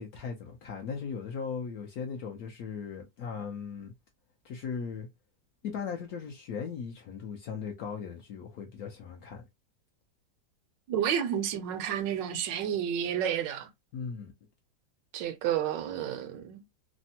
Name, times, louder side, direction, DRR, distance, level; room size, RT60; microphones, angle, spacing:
voice 1, 0.0-3.9 4.4-5.1 5.6-9.5 13.9-14.3, left 6 dB, 70° left, 0.9 m, -38 dB
voice 2, 10.9-13.7 15.1-16.6, right 9 dB, 80° right, 1.2 m, -30 dB
3.4 x 2.0 x 2.7 m
omnidirectional pair, 2.0 m